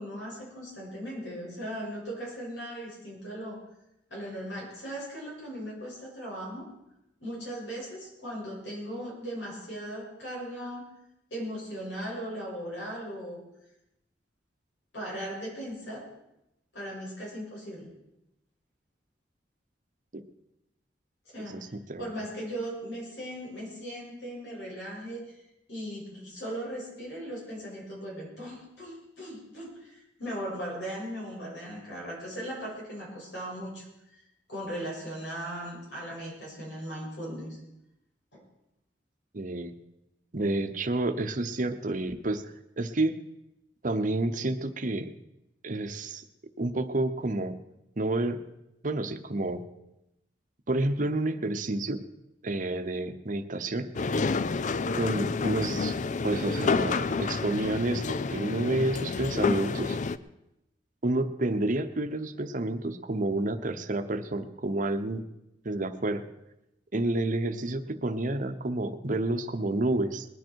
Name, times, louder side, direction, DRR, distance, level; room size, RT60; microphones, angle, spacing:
voice 1, 0.0-3.6 4.1-6.7 7.2-10.9 11.3-13.4 14.9-16.1 16.7-17.9 21.2-25.4 25.7-34.2 34.5-37.6 38.3-38.4, equal, 85° left, -3 dB, 6.6 m, -38 dB
voice 2, 21.5-22.1 39.3-39.7 40.3-42.4 42.8-43.2 43.8-45.1 45.6-46.2 46.6-47.6 48.0-48.4 48.8-49.6 50.7-52.0 52.4-53.9 54.9-56.0 56.2-60.0 61.0-65.2 65.6-66.3 66.9-70.3, right 2 dB, 45° right, 8 dB, 0.9 m, -29 dB
sound 1, 53.9-60.2, left 4 dB, 45° left, 0.5 m, -29 dB
20.0 x 10.5 x 4.6 m, 0.87 s
head